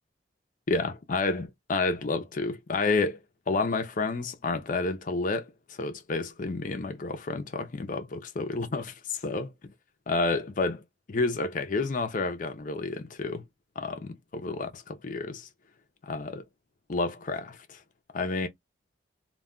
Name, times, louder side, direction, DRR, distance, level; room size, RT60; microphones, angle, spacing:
voice 1, 0.7-3.2 3.5-5.5 5.8-9.7 10.1-10.8 11.1-13.4 13.8-14.0 14.3-15.5 16.0-16.4 16.9-17.8 18.1-18.5, left 3 dB, 45° left, 0.5 m, -30 dB
2.2 x 2.1 x 3.5 m
head